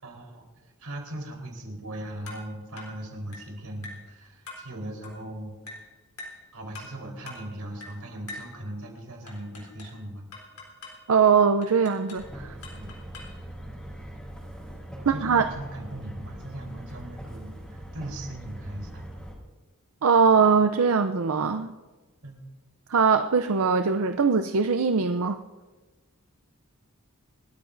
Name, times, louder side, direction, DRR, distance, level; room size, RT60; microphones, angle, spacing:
voice 1, 0.0-5.9 6.5-10.2 12.7-13.0 15.0-19.1 22.2-22.5, right 1 dB, 90° right, 0 dB, 4.1 m, -39 dB
sound 1, 2.3-2.5 2.8-3.0 3.3-3.5 3.8-4.1 4.5-4.7 5.0-5.2 5.7-5.9 6.2-6.4 6.7-7.0 7.3-7.5 7.8-8.0 8.3-8.5 9.3-10.0 10.3-11.0 11.6-12.3 12.6-13.4, left 2 dB, 75° left, 3.8 m, -43 dB
voice 2, 11.1-12.6 15.1-15.4 20.0-21.7 22.9-25.4, right 5 dB, 70° right, 8 dB, 0.6 m, -21 dB
sound 2, 12.2-19.3, right 1 dB, 5° left, 3.8 m, -41 dB
28.5 x 13.5 x 2.6 m, 1.2 s
head